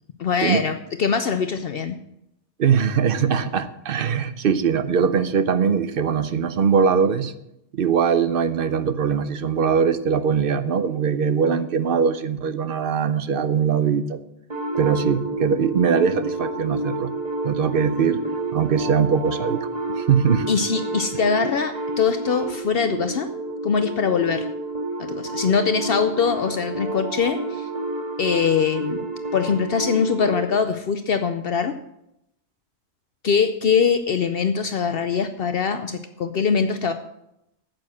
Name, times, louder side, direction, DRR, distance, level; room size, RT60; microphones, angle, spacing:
voice 1, 0.2-2.0 20.5-23.3 23.6-24.5 25.0-27.7 28.2-29.1 29.3-31.8 33.2-36.9, left 6 dB, 60° left, 9 dB, 0.8 m, -22 dB
voice 2, 2.6-7.3 7.7-14.2 14.8-17.1 17.4-18.2 18.5-19.7 20.0-20.5, right 6 dB, 55° right, 12 dB, 0.9 m, -21 dB
sound 1, 14.5-30.5, right 2 dB, 35° right, 2.0 m, -30 dB
9.3 x 7.7 x 7.4 m, 0.82 s
omnidirectional pair, 1.2 m